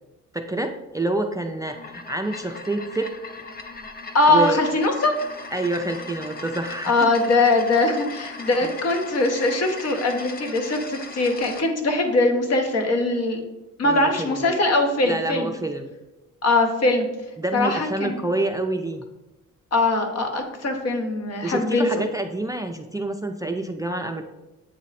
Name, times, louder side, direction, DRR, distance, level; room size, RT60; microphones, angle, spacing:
voice 1, 0.3-3.1 4.3-4.6 5.5-6.9 13.8-14.5 15.1-15.9 17.4-19.0 21.4-24.2, right 2 dB, 10° right, 6 dB, 0.4 m, -27 dB
sound 1, 1.5-11.7, left 3 dB, 30° left, 0.6 m, -38 dB
voice 2, 4.1-5.2 6.8-13.4 13.8-15.5 16.4-17.1 17.5-18.2 19.7-21.9, left 2 dB, 55° left, 3 dB, 1.2 m, -21 dB
8.0 x 3.1 x 4.1 m, 1.0 s
cardioid pair, 90°, 30 cm